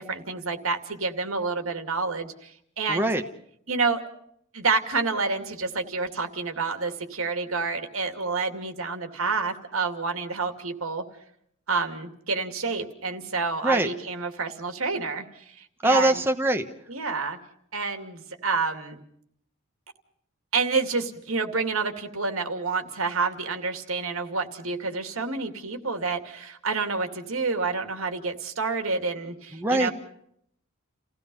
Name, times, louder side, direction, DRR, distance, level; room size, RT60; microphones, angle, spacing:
voice 1, 0.0-3.1 3.7-4.0 4.5-11.0 11.7-16.2 16.9-17.4 17.7-19.0 20.5-29.9, right 4 dB, 85° right, 6 dB, 2.5 m, -28 dB
voice 2, 2.9-3.2 13.6-13.9 15.8-16.6 29.5-29.9, right 1 dB, 10° right, 5 dB, 1.2 m, -22 dB
30.0 x 17.0 x 5.5 m, 0.68 s
head